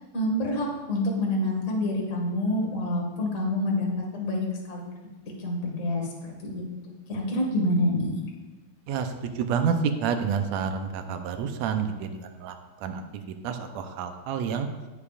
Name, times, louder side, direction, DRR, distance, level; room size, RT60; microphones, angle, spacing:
voice 1, 0.1-4.8 5.4-6.1 6.4-6.6 7.1-8.2, left 1 dB, 30° left, -1 dB, 1.6 m, -27 dB
voice 2, 8.9-9.7 10.0-12.5 12.8-13.0 13.4-14.7, right 7 dB, 75° right, 6 dB, 1.7 m, -29 dB
16.5 x 7.0 x 2.5 m, 1.2 s
omnidirectional pair, 3.7 m